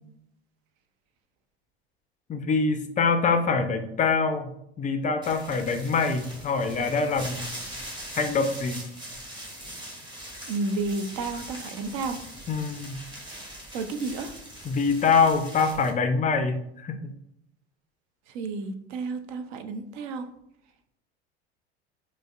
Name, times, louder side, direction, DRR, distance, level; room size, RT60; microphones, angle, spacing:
voice 1, 2.3-4.5 4.8-7.5 8.2-8.8 12.5-13.0 14.6-17.0, left 4 dB, 25° left, 7 dB, 0.4 m, -24 dB
sound 1, 5.2-15.9, right 1 dB, 15° right, 1.3 m, -41 dB
voice 2, 10.5-12.2 13.7-14.4 18.3-20.3, right 3 dB, 60° right, 7 dB, 0.6 m, -31 dB
4.9 x 2.0 x 2.4 m, 0.74 s
hypercardioid pair, 75°, 31 cm